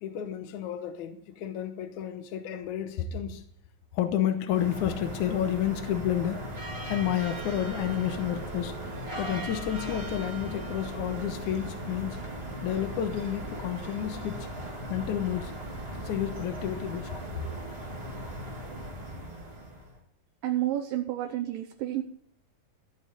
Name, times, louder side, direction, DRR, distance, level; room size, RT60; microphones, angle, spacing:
voice 1, 0.0-3.4 3.9-6.5 6.9-8.9 9.2-12.2 12.6-14.5 14.9-15.5 15.9-17.1, left 10 dB, 70° left, 2.1 m, -30 dB
sound 1, 4.5-20.0, right 1 dB, 25° right, 1.7 m, -38 dB
voice 2, 20.4-22.0, right 13 dB, 75° right, 2.4 m, -30 dB
15.5 x 5.6 x 8.0 m
omnidirectional pair, 4.1 m